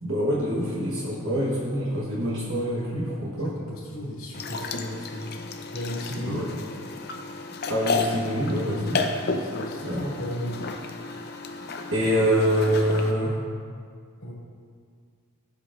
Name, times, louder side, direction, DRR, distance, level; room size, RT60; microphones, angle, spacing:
voice 1, 0.0-3.5 6.2-6.5 7.7-9.0 9.8-10.0 11.9-13.4, equal, 60° right, -5 dB, 1.2 m, -25 dB
voice 2, 3.4-5.4 5.7-6.4 9.3-10.7 12.0-12.1 14.2-14.3, equal, 65° left, -7 dB, 2.3 m, -35 dB
sound 1, 4.3-13.1, left 3 dB, 45° left, 0.5 m, -32 dB
12.0 x 7.8 x 2.5 m, 2.1 s
head